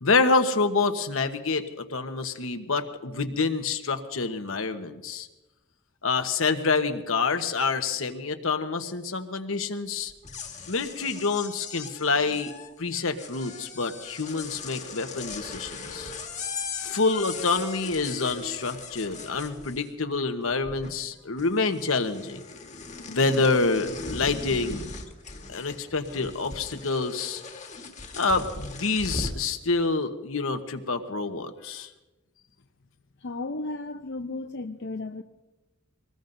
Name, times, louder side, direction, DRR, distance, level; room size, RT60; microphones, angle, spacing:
voice 1, 0.0-5.3 6.0-10.1 10.7-12.5 12.8-16.1 16.8-22.4 23.1-24.9 25.5-27.4 28.2-31.9, left 4 dB, 75° left, 1.2 m, -27 dB
sound 1, 10.1-20.1 20.4-21.1 21.4-29.5, left 4 dB, 35° left, 1.6 m, -39 dB
voice 2, 33.2-35.2, left 2 dB, 60° left, 0.6 m, -34 dB
24.5 x 20.0 x 2.7 m
head